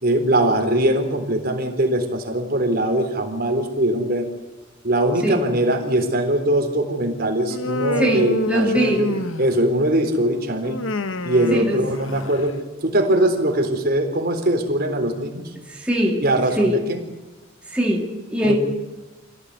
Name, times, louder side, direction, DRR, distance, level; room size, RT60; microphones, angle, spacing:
voice 1, 0.0-4.3 4.8-10.8 11.2-12.6 12.8-15.5 16.2-17.0 18.4-18.6, right 1 dB, 50° right, 4 dB, 3.9 m, -21 dB
Human voice, 7.5-9.8 10.6-12.5, left 2 dB, 75° left, 1.3 m, -27 dB
voice 2, 8.0-9.1 11.5-11.8 15.6-16.2 16.6-16.8 17.7-18.6, right 1 dB, 5° right, -2 dB, 2.5 m, -22 dB
26.5 x 16.5 x 9.8 m, 1.1 s
head